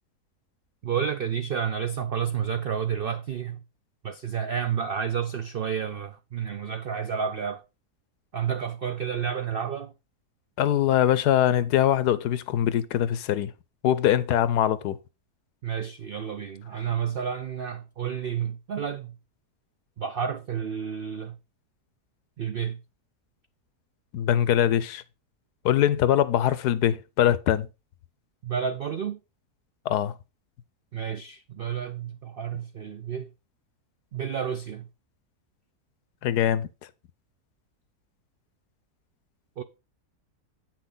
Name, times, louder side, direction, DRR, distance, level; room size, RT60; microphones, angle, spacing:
voice 1, 0.8-3.6 4.0-7.6 8.3-9.9 15.6-19.1 20.0-21.4 22.4-22.8 28.4-29.2 30.9-33.3 34.1-34.9 39.6-39.7, right 7 dB, 80° right, 0.5 m, -30 dB
voice 2, 10.6-13.5 13.8-15.0 24.1-25.0 25.6-27.7 29.8-30.1 36.2-36.7, left 11 dB, 90° left, 1.3 m, -22 dB
8.4 x 6.0 x 3.9 m
omnidirectional pair, 1.7 m